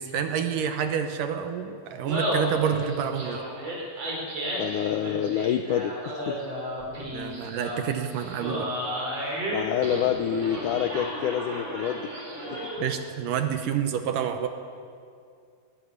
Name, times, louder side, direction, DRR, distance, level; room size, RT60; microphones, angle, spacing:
voice 1, 0.0-3.4 7.1-8.7 12.8-14.5, right 8 dB, 70° right, 7 dB, 2.3 m, -28 dB
Laughter, 1.9-13.0, equal, 40° right, 5.5 m, -33 dB
voice 2, 4.6-6.4 9.5-12.1, left 9 dB, 80° left, 7 dB, 1.8 m, -27 dB
20.0 x 13.5 x 9.7 m, 2.4 s
omnidirectional pair, 4.4 m